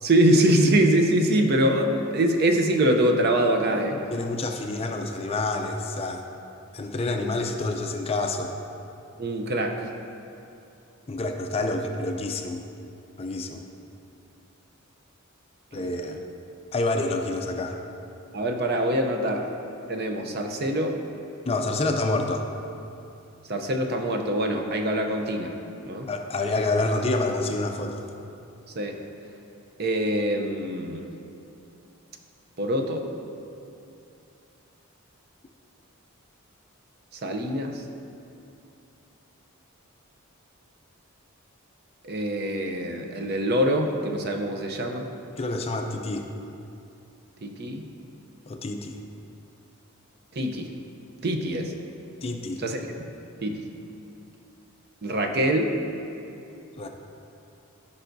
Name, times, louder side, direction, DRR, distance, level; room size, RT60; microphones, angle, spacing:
voice 1, 0.0-4.0 9.2-9.9 15.8-15.9 18.3-19.5 19.9-21.0 21.8-22.0 23.5-25.6 25.9-26.1 28.8-29.0 29.8-31.0 32.6-33.1 37.2-37.8 42.0-45.0 47.4-47.8 50.3-50.7 51.2-51.7 52.6-52.8 53.4-53.6 55.0-55.7, right 1 dB, 45° right, 4 dB, 0.6 m, -24 dB
voice 2, 4.1-6.2 6.7-8.5 11.1-12.6 13.2-13.6 15.7-16.2 16.7-17.8 21.5-22.5 26.1-28.1 45.4-46.3 48.5-49.0 52.2-52.6 56.8-56.9, left 2 dB, 25° left, 4 dB, 0.4 m, -28 dB
14.0 x 5.5 x 2.6 m, 2.7 s
head